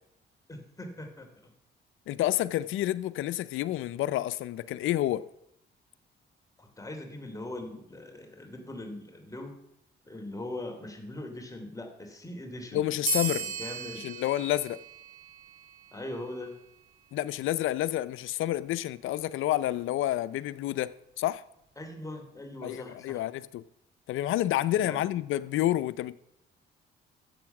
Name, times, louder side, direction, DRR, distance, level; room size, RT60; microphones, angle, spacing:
voice 1, 0.5-1.5 6.6-9.6 10.0-12.9 13.4-14.0 15.9-16.5 21.8-23.2 24.7-25.0, left 1 dB, 15° left, 3.2 m, -41 dB
voice 2, 2.1-5.2 12.7-13.4 14.0-14.8 17.1-21.4 22.6-23.6 24.1-26.1, left 14 dB, 85° left, 0.6 m, -29 dB
sound 1, 13.1-16.1, right 5 dB, 80° right, 2.7 m, -36 dB
14.0 x 8.0 x 6.0 m
cardioid pair, 90°, 20 cm